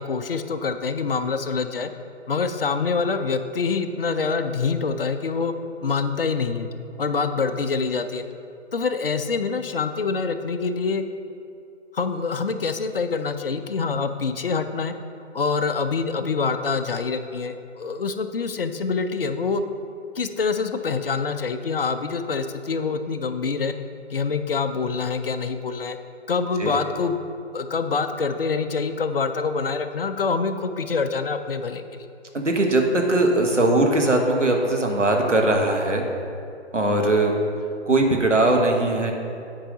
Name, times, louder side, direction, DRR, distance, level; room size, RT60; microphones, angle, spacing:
voice 1, 0.0-1.9 2.3-5.5 5.8-6.7 7.0-8.3 8.7-11.0 11.9-14.9 15.3-19.6 20.2-23.7 24.1-26.0 26.3-27.2 27.5-31.8, left 5 dB, 50° left, 9 dB, 0.5 m, -25 dB
voice 2, 32.3-36.0 36.7-37.3 37.8-39.1, right 2 dB, 85° right, 2 dB, 1.4 m, -20 dB
8.8 x 4.7 x 5.3 m, 2.6 s
figure-of-eight pair, 140°, 36 cm